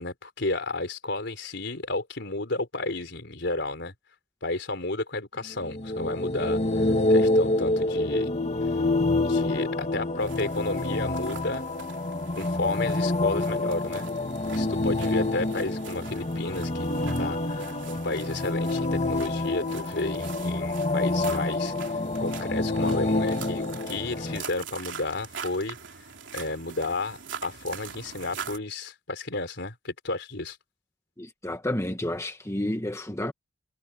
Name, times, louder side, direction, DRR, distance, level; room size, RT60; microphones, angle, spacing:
voice 1, 0.0-3.9 4.4-8.3 9.2-11.6 12.4-14.1 14.5-16.9 17.2-17.7 18.0-21.7 22.2-25.8 26.3-30.6, left 2 dB, 65° left, 4.4 m, -32 dB
sound 1, 5.6-24.4, left 2 dB, 35° left, 2.1 m, -27 dB
sound 2, 10.2-28.6, right 6 dB, 70° right, 3.4 m, -43 dB
voice 2, 31.2-33.3, left 1 dB, 15° left, 1.4 m, -30 dB
head